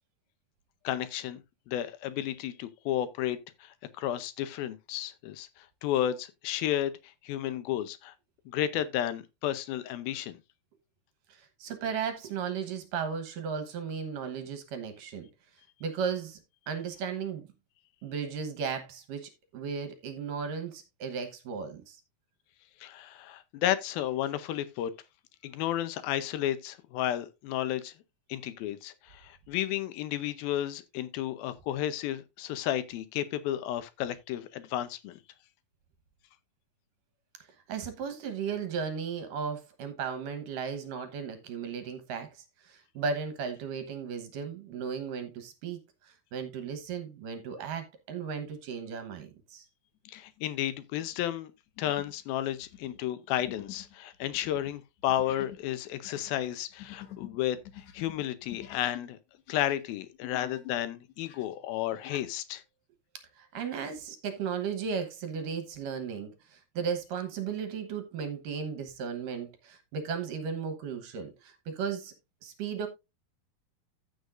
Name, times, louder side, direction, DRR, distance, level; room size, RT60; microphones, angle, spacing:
voice 1, 0.8-1.4 1.7-6.9 7.2-8.1 8.5-10.4 22.8-24.9 25.4-27.9 28.3-35.2 50.1-51.5 51.8-59.2 59.5-62.6, left 12 dB, 75° left, 2.5 m, -32 dB
voice 2, 11.3-15.3 15.8-16.4 16.7-17.4 18.0-22.0 37.7-42.3 42.7-45.8 46.1-49.7 63.4-72.1 72.4-72.9, right 6 dB, 65° right, 2.6 m, -35 dB
sound 1, 50.1-50.4 50.9-51.1 51.8-52.2 52.5-59.1 59.4-60.8 61.1-62.3, left 11 dB, 60° left, 2.1 m, -48 dB
15.0 x 6.4 x 2.5 m
omnidirectional pair, 4.4 m